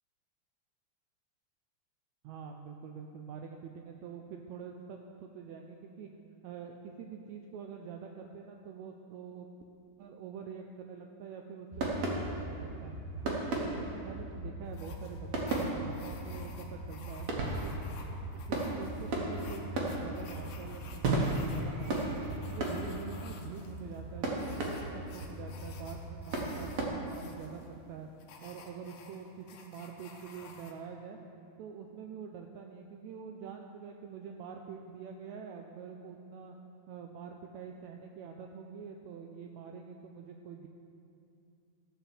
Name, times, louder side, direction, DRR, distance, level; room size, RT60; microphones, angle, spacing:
voice 1, 2.2-6.1 6.4-9.5 10.0-12.9 13.2-17.3 17.6-17.7 18.3-22.2 22.5-28.1 28.4-31.2 31.6-36.6 36.9-40.7, right 6 dB, 80° right, 3 dB, 1.7 m, -46 dB
sound 1, 11.7-26.9, right 2 dB, 60° right, 2.4 m, -36 dB
sound 2, 14.7-30.7, left 4 dB, 75° left, 2.4 m, -54 dB
14.0 x 5.8 x 7.2 m, 2.6 s
omnidirectional pair, 3.6 m